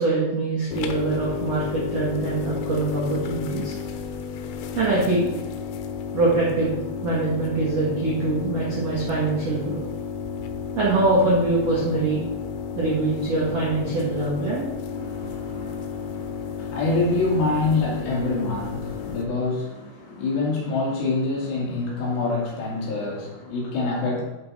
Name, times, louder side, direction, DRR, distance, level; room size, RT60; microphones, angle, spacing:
voice 1, 0.0-3.7 4.7-5.3 6.1-6.7 7.0-9.8 10.8-12.2 12.8-14.7, right 3 dB, 80° right, -6 dB, 1.4 m, -23 dB
sound 1, 0.7-19.2, left 6 dB, 90° left, 3.3 m, -32 dB
voice 2, 14.9-24.2, left 3 dB, 65° left, -4 dB, 3.9 m, -26 dB
11.5 x 4.8 x 4.1 m, 1.0 s
omnidirectional pair, 5.8 m